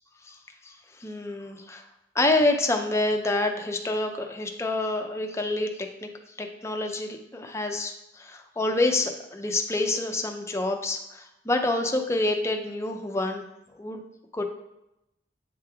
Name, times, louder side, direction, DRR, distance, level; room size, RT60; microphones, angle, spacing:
voice 1, 1.0-1.8 2.2-6.1 6.4-13.4 13.8-14.0 14.3-14.4, left 2 dB, 15° left, 4 dB, 0.6 m, -27 dB
8.4 x 3.2 x 3.5 m, 0.87 s
head